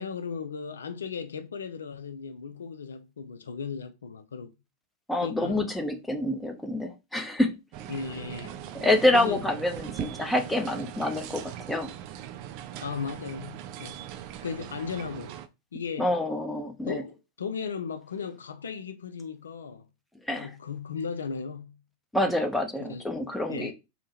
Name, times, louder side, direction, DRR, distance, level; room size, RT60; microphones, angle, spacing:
voice 1, 0.0-4.5 5.2-5.6 7.9-8.6 9.1-9.4 12.8-14.0 14.4-15.3 15.7-16.1 16.9-19.9 20.4-21.8 22.9-23.1 23.5-23.7, left 6 dB, 70° left, 0.4 m, -36 dB
voice 2, 5.1-7.5 8.7-11.9 16.0-17.0 20.3-20.5 22.1-23.7, left 1 dB, 5° left, 0.6 m, -27 dB
sound 1, 7.7-15.5, right 11 dB, 45° right, 0.4 m, -40 dB
3.5 x 2.1 x 4.1 m
figure-of-eight pair, 90°, 0 cm